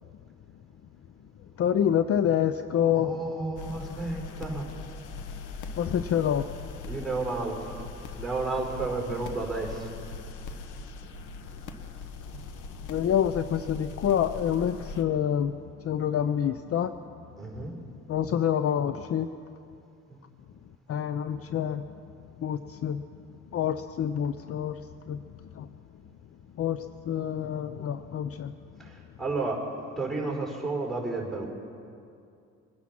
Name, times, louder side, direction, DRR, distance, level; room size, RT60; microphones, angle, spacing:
voice 1, 1.6-3.1 5.8-6.5 12.9-15.6 15.8-16.9 18.1-19.3 20.9-21.8 22.4-23.0 23.5-24.8 25.1-25.7 26.6-28.5, left 9 dB, 50° left, 11 dB, 0.5 m, -27 dB
voice 2, 2.9-4.7 6.8-7.7 8.2-9.9 17.4-17.7 20.1-20.2 28.8-28.9 29.2-29.6 30.0-31.5, right 3 dB, ahead, 0 dB, 4.5 m, -32 dB
sound 1, 3.6-15.0, left 4 dB, 80° left, 1.1 m, -41 dB
24.0 x 10.0 x 5.9 m, 2.5 s
cardioid pair, 90°, 30 cm